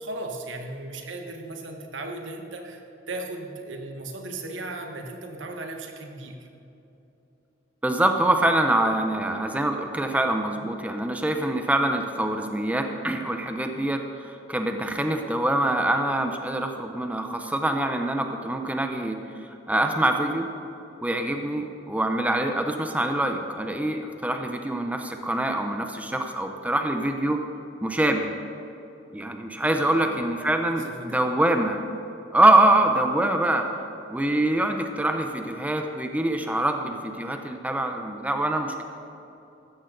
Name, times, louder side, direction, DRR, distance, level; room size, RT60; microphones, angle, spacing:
voice 1, 0.0-2.8 3.1-6.5 29.8-30.2 30.7-31.2, right 2 dB, 75° right, 3 dB, 1.5 m, -36 dB
voice 2, 7.8-19.2 19.7-20.5 21.0-27.4 27.8-28.3 29.1-31.8 32.3-33.7 34.1-38.8, right 1 dB, 10° right, 5 dB, 0.7 m, -24 dB
15.0 x 13.0 x 3.9 m, 2.9 s
head